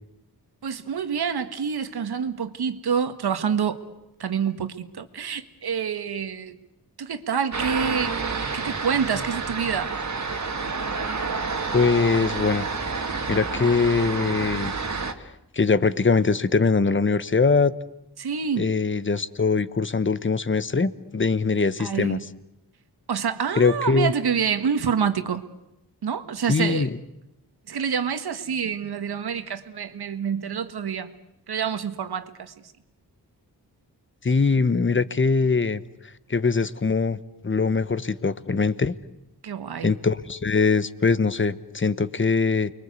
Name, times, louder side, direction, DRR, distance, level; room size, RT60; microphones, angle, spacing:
voice 1, 0.6-3.8 4.2-6.6 7.0-8.2 8.5-9.9 18.2-18.7 21.8-22.2 23.1-25.5 26.0-26.9 27.7-31.1 31.5-32.7 39.4-40.0, right 7 dB, 80° right, 9 dB, 1.8 m, -27 dB
sound 1, 7.5-15.1, right 4 dB, 45° right, 2.1 m, -29 dB
voice 2, 11.7-12.7 13.3-14.7 15.5-17.7 18.6-22.2 23.6-24.1 26.5-27.0 34.2-35.8 36.3-37.2 37.4-38.9 39.8-42.7, left 4 dB, 30° left, 14 dB, 1.1 m, -22 dB
29.0 x 22.5 x 8.3 m, 0.88 s
cardioid pair, 80°, 38 cm